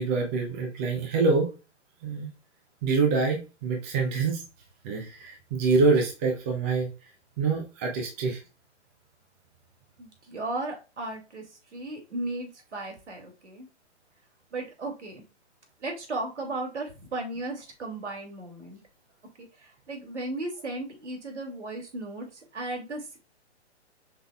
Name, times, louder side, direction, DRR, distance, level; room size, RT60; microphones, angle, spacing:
voice 1, 0.0-1.5 2.0-2.3 2.8-4.4 4.8-6.9 7.4-8.4, right 4 dB, 15° right, 2 dB, 0.5 m, -25 dB
voice 2, 10.0-11.4 11.7-13.7 14.5-15.2 15.8-18.8 19.4-23.2, right 2 dB, 70° right, 1 dB, 2.3 m, -35 dB
5.4 x 3.8 x 2.2 m, 0.30 s
hypercardioid pair, 145°, 35 cm